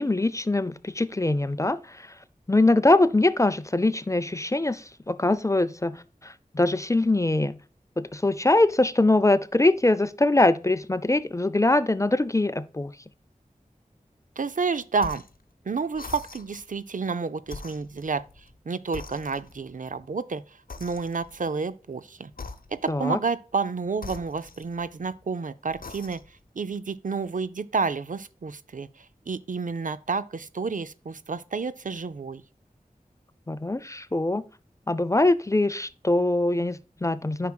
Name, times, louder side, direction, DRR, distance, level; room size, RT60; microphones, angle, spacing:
voice 1, 0.0-2.2 2.5-7.6 8.0-12.9 22.9-23.2 33.5-34.4 34.9-37.5, left 2 dB, 20° left, 0.5 m, -23 dB
voice 2, 14.4-15.2 15.7-18.2 18.7-20.4 20.8-22.3 22.7-26.2 26.6-32.4, right 4 dB, 65° right, 0.5 m, -30 dB
sound 1, 15.0-15.4 15.9-16.7 17.4-18.6 18.9-19.7 20.7-21.4 22.3-23.0 24.0-25.1 25.7-26.4, left 4 dB, 75° left, 0.8 m, -43 dB
9.4 x 5.9 x 2.3 m
wide cardioid pair, 60°, 15 cm